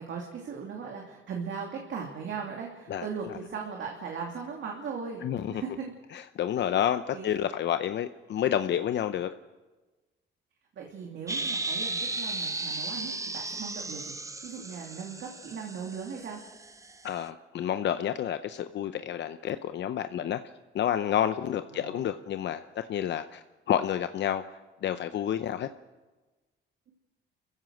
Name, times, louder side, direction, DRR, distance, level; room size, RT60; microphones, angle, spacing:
voice 1, 0.0-5.9 7.1-7.3 10.7-14.1 14.4-16.4 21.7-22.1, right 6 dB, 70° right, 0 dB, 2.7 m, -38 dB
voice 2, 5.2-5.6 6.1-9.3 17.0-20.4 20.7-24.4 24.8-25.7, left 10 dB, 65° left, 10 dB, 0.7 m, -29 dB
sound 1, 11.3-17.1, right 3 dB, 15° right, 0.9 m, -35 dB
28.5 x 15.5 x 6.4 m, 1.2 s
cardioid pair, 90°, 20 cm